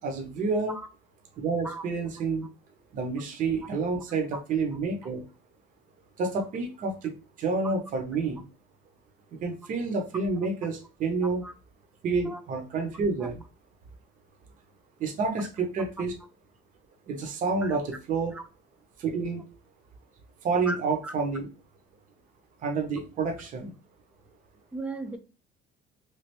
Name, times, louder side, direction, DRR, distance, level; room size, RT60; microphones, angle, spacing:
voice 1, 0.0-0.7 1.4-2.5 2.9-5.2 6.2-8.4 9.4-11.4 12.0-13.4 15.0-16.1 17.1-18.3 19.0-19.5 20.4-21.5 22.6-23.7, right 4 dB, 40° right, 4 dB, 0.6 m, -29 dB
voice 2, 24.7-25.2, right 2 dB, 5° right, 8 dB, 0.3 m, -36 dB
3.1 x 2.4 x 2.9 m, 0.33 s
cardioid pair, 155°, 21 cm